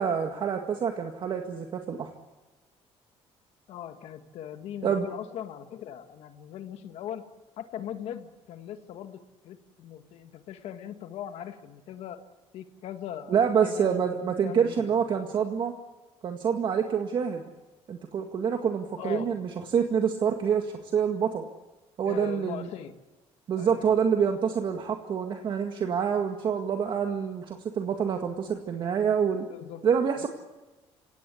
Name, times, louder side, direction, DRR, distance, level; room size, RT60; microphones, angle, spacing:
voice 1, 0.0-2.1 4.8-5.1 13.3-15.8 16.2-17.5 17.9-21.5 22.0-22.7 23.5-29.5 29.8-30.3, right 7 dB, 45° right, 4 dB, 1.9 m, -27 dB
voice 2, 3.7-7.3 7.6-12.2 12.5-15.0 19.0-19.4 22.0-23.0 23.5-23.9 29.5-29.9 30.2-30.3, left 10 dB, 75° left, 7 dB, 1.8 m, -40 dB
26.0 x 18.0 x 8.4 m, 1.1 s
cardioid pair, 135°, 11 cm